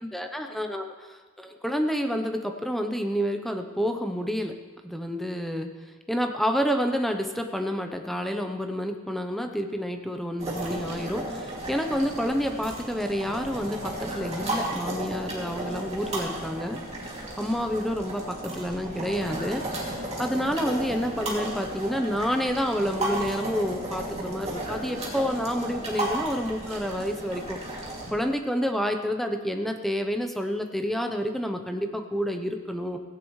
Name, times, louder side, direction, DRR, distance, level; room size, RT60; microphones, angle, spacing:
voice 1, 0.0-4.5 4.8-5.7 6.1-16.8 17.4-19.6 20.2-27.6 28.1-33.0, equal, ahead, 4 dB, 0.7 m, -29 dB
sound 1, 10.4-28.1, right 1 dB, 30° right, 2.5 m, -34 dB
17.0 x 16.5 x 3.2 m, 1.4 s
head